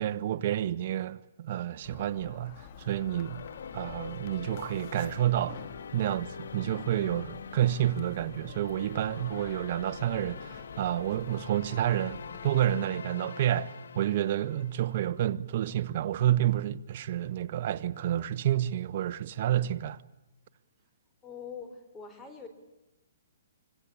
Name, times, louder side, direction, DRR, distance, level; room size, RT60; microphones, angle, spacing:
voice 1, 0.0-3.4 3.7-5.6 5.9-20.0, right 11 dB, 45° right, 1.2 m, -29 dB
sound 1, 1.8-12.9, left 7 dB, 45° left, 2.2 m, -48 dB
sound 2, 2.8-15.2, left 6 dB, 80° left, 1.5 m, -45 dB
voice 2, 21.2-22.5, left 6 dB, 10° left, 3.7 m, -43 dB
25.5 x 25.5 x 8.6 m
hypercardioid pair, 150°, 0 cm